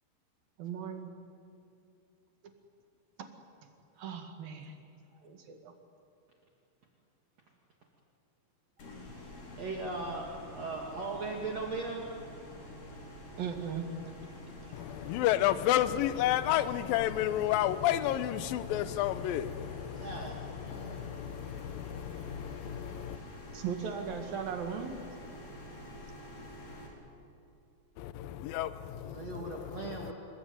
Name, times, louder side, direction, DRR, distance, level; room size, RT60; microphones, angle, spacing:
voice 1, 0.6-1.1 4.0-4.7 5.2-5.7 13.4-13.9 14.8-14.9 23.5-25.0, right 7 dB, 65° right, 5 dB, 3.6 m, -38 dB
sound 1, 8.8-26.9, left 1 dB, 60° left, 5.9 m, -48 dB
voice 2, 9.6-10.3 10.6-12.1 20.0-21.0 29.0-30.1, right 3 dB, 45° right, -1 dB, 3.2 m, -38 dB
voice 3, 14.7-23.2 28.0-30.1, left 12 dB, 75° left, 12 dB, 2.5 m, -31 dB
27.0 x 22.0 x 9.3 m, 2.6 s
omnidirectional pair, 4.5 m